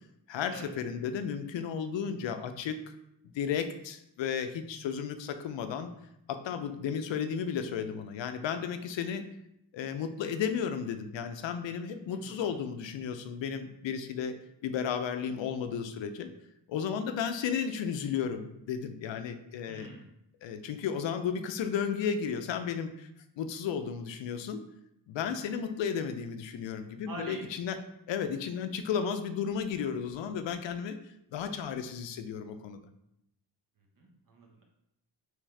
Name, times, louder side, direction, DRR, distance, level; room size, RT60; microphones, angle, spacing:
voice 1, 0.3-2.8 3.3-5.9 6.3-9.2 9.7-16.3 16.7-19.9 20.4-23.1 23.4-24.6 25.1-27.8 28.1-31.0 31.3-32.8, left 7 dB, 90° left, 8 dB, 0.5 m, -33 dB
voice 2, 12.1-12.6 19.6-20.1 27.1-27.5 34.0-34.6, right 2 dB, 50° right, 0 dB, 1.0 m, -45 dB
3.6 x 3.3 x 3.2 m, 0.79 s
wide cardioid pair, 120°, 44 cm